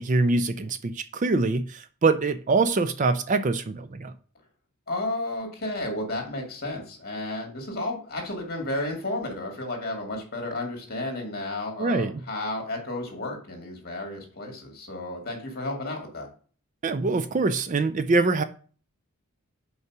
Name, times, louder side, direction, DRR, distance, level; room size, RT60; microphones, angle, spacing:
voice 1, 0.0-4.1 11.8-12.2 16.8-18.4, right 3 dB, 35° right, 0.4 m, -24 dB
voice 2, 4.9-16.3, left 2 dB, 45° left, 2.2 m, -32 dB
5.5 x 4.7 x 6.0 m
head